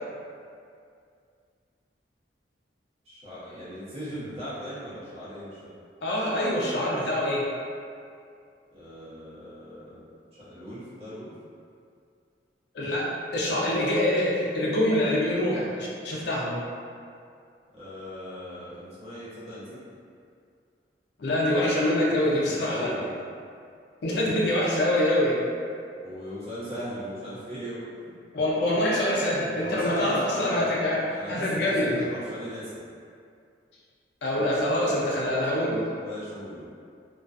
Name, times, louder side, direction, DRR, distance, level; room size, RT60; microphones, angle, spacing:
voice 1, 3.1-5.7 8.7-10.0 10.4-11.3 17.7-19.8 22.4-23.1 26.0-27.9 29.6-30.7 31.1-32.8 36.0-36.7, equal, 35° right, -11 dB, 0.9 m, -37 dB
voice 2, 6.0-7.4 12.7-16.6 21.2-22.8 24.0-25.4 28.3-32.0 34.2-35.8, left 1 dB, 65° left, -4 dB, 0.4 m, -25 dB
2.3 x 2.2 x 2.4 m, 2.3 s
head